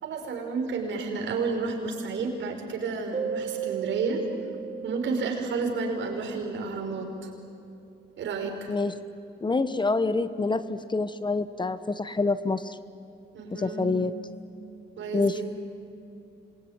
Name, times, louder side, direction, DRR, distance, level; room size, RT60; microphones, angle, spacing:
voice 1, 0.0-4.2 4.8-7.3 8.2-8.7 13.3-13.9 15.0-15.4, right 4 dB, 70° right, 2 dB, 5.6 m, -31 dB
sound 1, 3.1-6.4, right 8 dB, 35° right, 4.5 m, -35 dB
voice 2, 9.4-12.8 13.5-14.1 15.1-15.4, left 3 dB, 25° left, 13 dB, 1.0 m, -27 dB
27.0 x 22.0 x 9.7 m, 2.6 s
cardioid pair, 90°, 20 cm